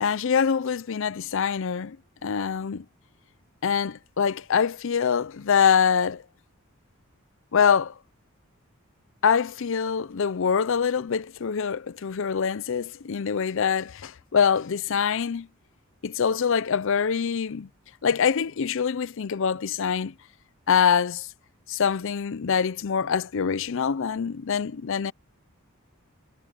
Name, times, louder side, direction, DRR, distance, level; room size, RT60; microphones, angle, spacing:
voice 1, 0.0-2.0 2.2-2.8 3.6-6.2 7.5-7.9 9.2-15.5 16.0-17.7 18.0-20.1 20.7-21.3 21.7-25.1, left 7 dB, 65° left, 0.5 m, -24 dB
head